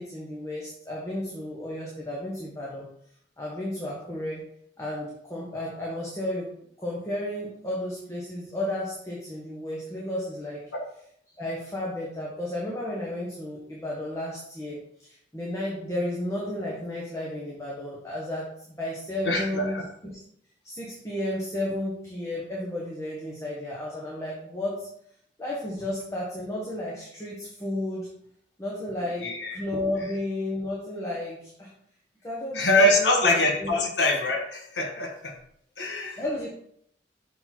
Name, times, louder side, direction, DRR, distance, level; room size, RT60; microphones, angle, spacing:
voice 1, 0.0-2.9 3.4-4.4 4.8-6.5 6.8-10.6 11.4-14.8 15.0-18.5 18.8-20.2 20.6-24.9 25.4-28.1 28.6-29.3 29.5-31.7 32.2-33.2 33.6-33.7 36.2-36.5, left 1 dB, 20° left, -5 dB, 1.3 m, -33 dB
voice 2, 19.2-19.8 29.2-29.6 32.5-35.3 35.8-36.2, left 1 dB, 80° left, 1 dB, 1.5 m, -24 dB
6.9 x 4.1 x 4.4 m, 0.69 s
head